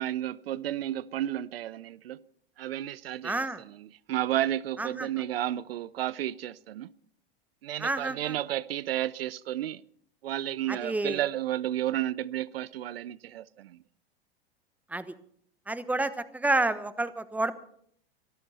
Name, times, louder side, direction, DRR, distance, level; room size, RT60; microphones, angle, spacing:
voice 1, 0.0-2.2 2.6-6.9 7.6-9.8 10.2-13.8, right 12 dB, 80° right, 0.6 m, -32 dB
voice 2, 3.2-3.6 4.8-5.1 7.8-8.4 10.7-11.2 14.9-15.1 15.7-17.5, right 2 dB, 5° right, 1.1 m, -29 dB
23.5 x 13.5 x 4.2 m
hypercardioid pair, 100°, 29 cm